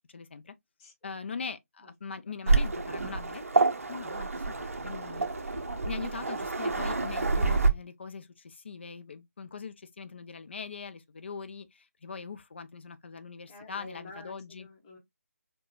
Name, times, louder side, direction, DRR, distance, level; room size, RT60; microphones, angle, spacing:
voice 1, 0.1-0.5 1.0-5.5 5.8-14.7, left 5 dB, 45° left, 0.5 m, -42 dB
Waves surf, 2.5-7.7, right 3 dB, 60° right, 0.6 m, -28 dB
voice 2, 13.5-15.0, left 2 dB, 15° left, 1.0 m, -49 dB
4.8 x 2.2 x 2.3 m
figure-of-eight pair, 155°, 8 cm